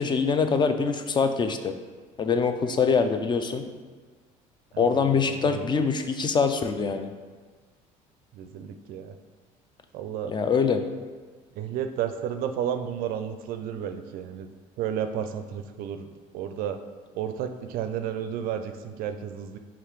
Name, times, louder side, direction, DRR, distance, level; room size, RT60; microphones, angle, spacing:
voice 1, 0.0-1.7 2.2-3.7 4.8-7.1 10.3-10.8, left 5 dB, 30° left, 7 dB, 0.4 m, -24 dB
voice 2, 4.7-5.7 8.3-9.1 9.9-10.3 11.6-14.5 14.8-16.1 16.3-16.8 17.1-19.6, right 9 dB, 65° right, 8 dB, 0.4 m, -32 dB
4.8 x 3.0 x 3.1 m, 1.4 s
supercardioid pair, 80°, 16 cm